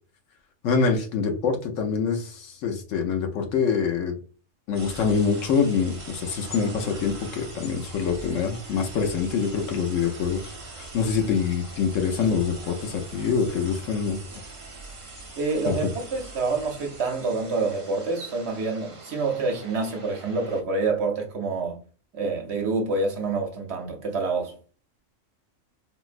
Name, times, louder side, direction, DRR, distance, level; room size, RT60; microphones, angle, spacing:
voice 1, 0.6-4.2 4.7-14.2 15.7-15.9, left 5 dB, 70° left, 1.0 m, -25 dB
sound 1, 4.7-20.6, right 2 dB, 40° right, 0.5 m, -42 dB
voice 2, 15.4-21.8 22.1-24.6, right 3 dB, 60° right, 0.9 m, -27 dB
3.9 x 2.0 x 2.4 m
omnidirectional pair, 1.4 m